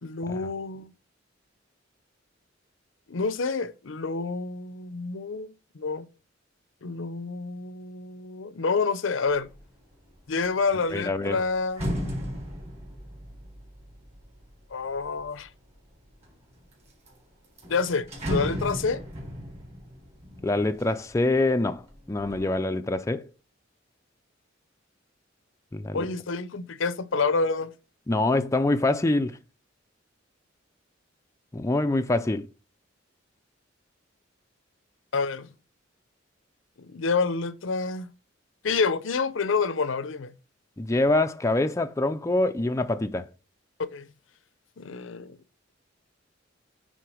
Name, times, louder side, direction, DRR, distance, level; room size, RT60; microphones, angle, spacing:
voice 1, 0.0-0.9 3.1-6.1 6.8-9.5 10.3-11.9 14.7-15.5 17.7-19.0 25.9-27.7 35.1-35.5 36.8-38.1 38.6-40.3 43.9-44.1 44.8-45.4, left 4 dB, 70° left, 0.6 m, -28 dB
sound 1, 9.3-9.7 10.1-15.4 16.0-16.7 17.1-17.2 17.4-21.4 21.8-22.4, equal, 35° right, 3.8 m, -35 dB
voice 2, 10.9-11.4 20.4-21.8 22.1-23.3 25.7-26.1 28.1-29.4 31.5-32.5 40.8-43.3, left 2 dB, 15° left, 0.4 m, -25 dB
9.2 x 3.8 x 4.9 m
head